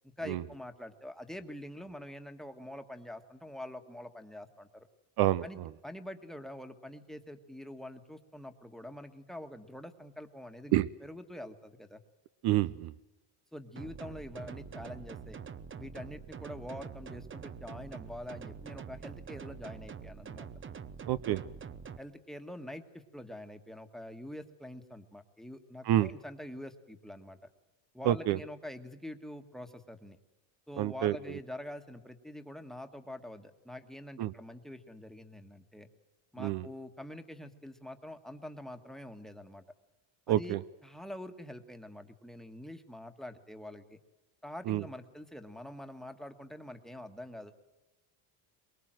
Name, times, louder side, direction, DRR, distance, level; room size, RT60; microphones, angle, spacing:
voice 1, 0.2-4.9 5.4-10.7 11.0-12.0 13.5-15.4 15.7-20.5 21.3-21.4 22.0-27.4 27.9-30.2 30.7-35.9 36.3-39.6 40.3-40.6 40.8-44.0 44.4-47.5, left 1 dB, ahead, 9 dB, 1.6 m, -45 dB
voice 2, 5.2-5.7 10.7-10.9 12.4-12.9 21.1-21.4 25.8-26.1 28.0-28.4 30.8-31.4 34.2-34.3 36.4-36.7 40.3-40.6 44.7-44.8, right 14 dB, 55° right, 15 dB, 0.8 m, -28 dB
sound 1, 13.8-22.0, right 6 dB, 25° right, 0.9 m, -45 dB
23.5 x 22.0 x 7.7 m, 1.0 s
cardioid pair, 140°, 46 cm